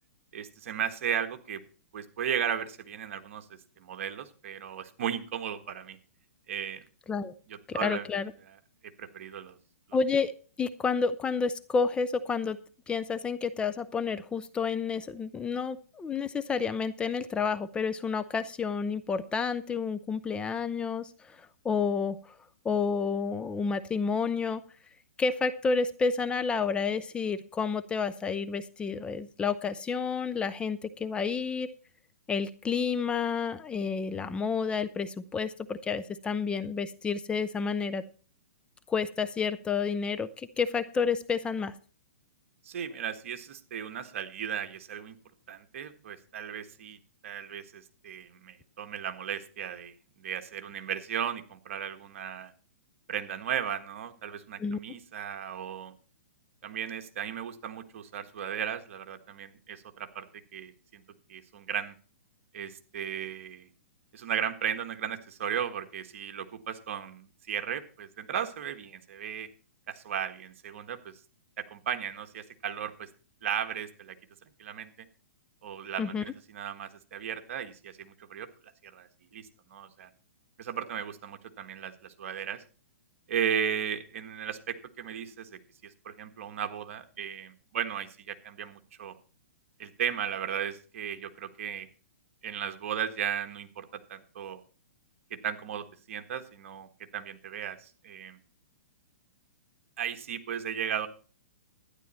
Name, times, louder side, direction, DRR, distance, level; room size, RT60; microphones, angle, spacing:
voice 1, 0.3-1.6 1.9-3.5 3.8-6.0 6.5-6.8 7.5-8.1 9.0-9.6 42.6-45.2 45.5-47.0 47.2-52.5 53.1-55.9 56.6-60.3 60.5-61.0 61.3-61.9 62.5-63.7 64.1-69.5 69.9-71.1 71.6-73.1 73.4-74.2 74.6-75.1 75.6-78.5 78.9-80.1 80.6-82.6 83.3-89.1 89.8-91.9 92.4-94.6 95.3-98.4 100.0-101.1, right 8 dB, 60° right, 8 dB, 1.4 m, -35 dB
voice 2, 7.7-8.3 9.9-10.3 10.6-12.6 12.9-22.3 22.6-24.6 25.2-31.7 32.3-38.0 38.9-41.7 54.6-54.8 76.0-76.2, left 5 dB, 10° left, 12 dB, 0.5 m, -30 dB
12.0 x 10.0 x 4.2 m, 0.38 s
hypercardioid pair, 135°, 8 cm